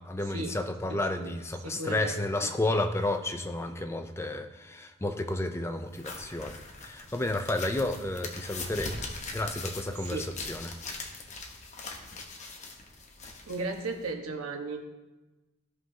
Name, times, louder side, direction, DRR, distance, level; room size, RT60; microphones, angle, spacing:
voice 1, 0.0-9.0 9.3-10.8, left 2 dB, 10° left, 6 dB, 0.4 m, -32 dB
voice 2, 0.9-1.3 1.6-2.5 10.1-10.3 13.5-14.8, right 3 dB, 90° right, 3 dB, 1.2 m, -35 dB
sound 1, 5.9-14.1, left 3 dB, 35° left, 1.0 m, -41 dB
15.5 x 5.6 x 2.8 m, 1.1 s
head